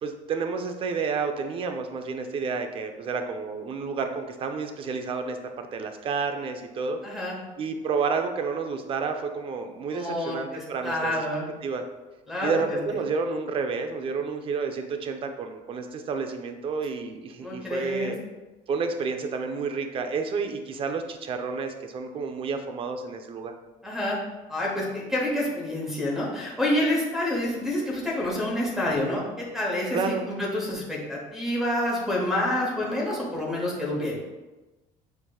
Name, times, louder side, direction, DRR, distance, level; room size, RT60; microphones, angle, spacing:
voice 1, 0.0-7.0 7.6-11.2 11.6-11.8 12.4-18.2 18.7-23.5 29.9-30.3, right 4 dB, 35° right, 6 dB, 0.4 m, -30 dB
voice 2, 7.0-7.4 9.9-11.5 12.3-12.6 17.4-18.1 23.8-24.2 24.5-34.2, left 1 dB, ahead, -4 dB, 0.9 m, -28 dB
6.5 x 2.8 x 2.3 m, 1.2 s
cardioid pair, 135°, 15 cm